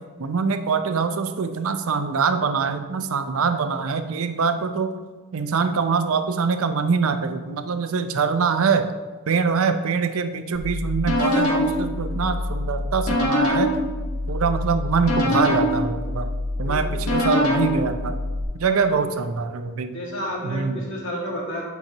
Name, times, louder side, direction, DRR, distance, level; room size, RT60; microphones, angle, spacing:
voice 1, 0.2-4.9 5.3-8.9 9.3-13.7 14.3-18.2 18.6-20.0 20.4-20.9, right 5 dB, 70° right, 9 dB, 0.5 m, -24 dB
sound 1, 10.5-18.4, left 1 dB, 80° left, 1.4 m, -24 dB
voice 2, 16.7-17.0 18.6-18.9 19.9-21.7, equal, 55° left, -3 dB, 1.9 m, -31 dB
9.0 x 5.8 x 2.9 m, 1.4 s
head